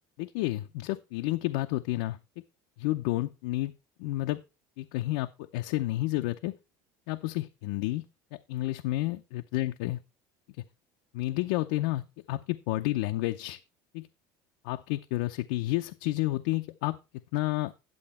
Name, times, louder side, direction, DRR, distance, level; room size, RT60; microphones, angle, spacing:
voice 1, 0.2-2.2 2.8-3.7 4.0-4.4 4.8-6.5 7.1-8.0 8.3-10.0 11.1-13.6 13.9-14.1 14.6-17.0 17.3-17.7, left 17 dB, 85° left, 0.6 m, -30 dB
11.0 x 7.8 x 4.3 m
cardioid pair, 130°, 9 cm